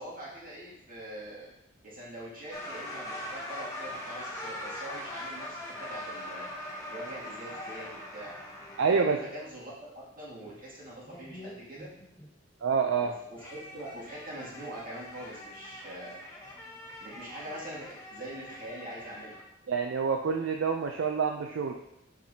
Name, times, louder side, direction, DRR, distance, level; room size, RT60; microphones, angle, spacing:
voice 1, 0.0-1.5 1.8-6.4 6.9-8.3 8.9-11.9 12.9-16.2 17.0-19.4, right 1 dB, 45° right, -6 dB, 2.3 m, -43 dB
sound 1, 2.5-9.1 11.1-12.3 13.4-19.5, left 1 dB, 15° left, 0.9 m, -42 dB
voice 2, 8.8-9.2 12.6-13.1 19.7-21.7, right 5 dB, 65° right, 3 dB, 0.5 m, -27 dB
7.2 x 5.9 x 2.8 m, 0.82 s
head